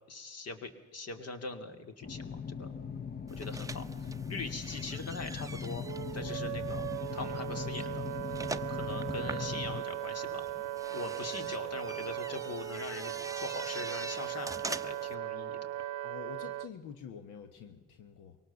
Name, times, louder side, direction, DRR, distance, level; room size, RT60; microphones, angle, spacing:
voice 1, 0.1-2.7 3.3-3.8 4.3-5.9 6.1-8.0 8.7-10.5 10.9-15.6, left 3 dB, 55° left, 8 dB, 2.6 m, -42 dB
sound 1, 2.0-9.8, left 6 dB, 30° left, 0.8 m, -40 dB
sound 2, 3.3-15.1, right 3 dB, 10° right, 0.7 m, -44 dB
Wind instrument woodwind instrument, 5.8-16.7, right 13 dB, 65° right, 0.6 m, -38 dB
voice 2, 16.0-18.4, left 7 dB, 90° left, 8 dB, 1.4 m, -47 dB
23.5 x 18.5 x 7.1 m, 1.2 s
cardioid pair, 90°, 30 cm